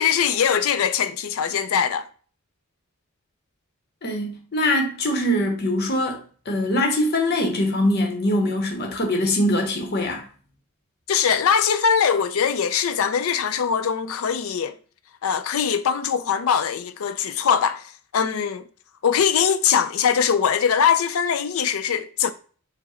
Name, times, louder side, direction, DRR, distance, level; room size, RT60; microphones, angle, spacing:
voice 1, 0.0-2.1 11.1-14.8 15.2-18.6 19.0-22.3, left 7 dB, 80° left, 0.4 m, -22 dB
voice 2, 4.0-6.2 6.5-10.2, left 1 dB, 50° left, 0.8 m, -22 dB
4.6 x 2.1 x 4.2 m
head